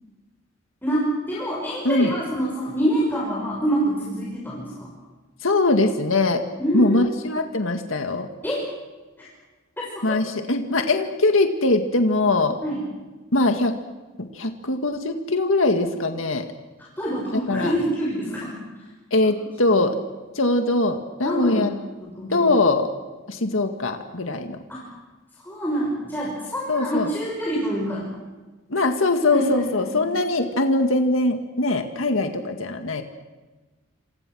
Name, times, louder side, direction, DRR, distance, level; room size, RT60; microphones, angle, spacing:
voice 1, 0.8-4.9 6.6-7.1 8.4-8.7 9.2-9.3 9.8-10.2 12.6-12.8 17.0-18.6 19.7-19.8 21.2-21.7 22.0-22.5 24.7-24.9 25.4-28.1 29.3-30.1, right 1 dB, 10° left, -5 dB, 6.1 m, -26 dB
voice 2, 5.4-6.4 6.7-8.3 10.0-12.6 13.3-13.7 14.3-16.5 17.3-17.7 19.1-19.9 20.4-21.7 22.3-22.9 23.3-24.6 26.7-27.1 28.7-33.0, left 2 dB, 85° left, 6 dB, 2.0 m, -21 dB
29.0 x 26.5 x 6.3 m, 1.2 s
head